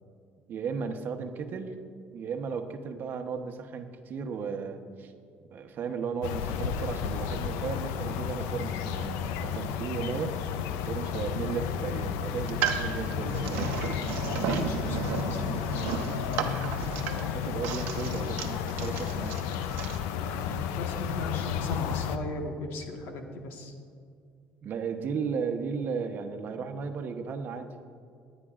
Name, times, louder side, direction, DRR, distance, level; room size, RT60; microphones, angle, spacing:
voice 1, 0.5-1.7 2.1-5.1 5.5-10.4 10.8-13.7 17.1-19.4 24.6-27.7, right 6 dB, 55° right, 6 dB, 0.9 m, -35 dB
sound 1, 6.2-22.2, left 8 dB, 90° left, 0.4 m, -32 dB
sound 2, 12.4-20.0, right 7 dB, 80° right, 0.8 m, -34 dB
voice 2, 14.2-15.6 20.1-23.7, left 2 dB, 75° left, 3 dB, 1.4 m, -37 dB
20.0 x 9.8 x 2.5 m, 2.3 s
cardioid pair, 95°, 4 cm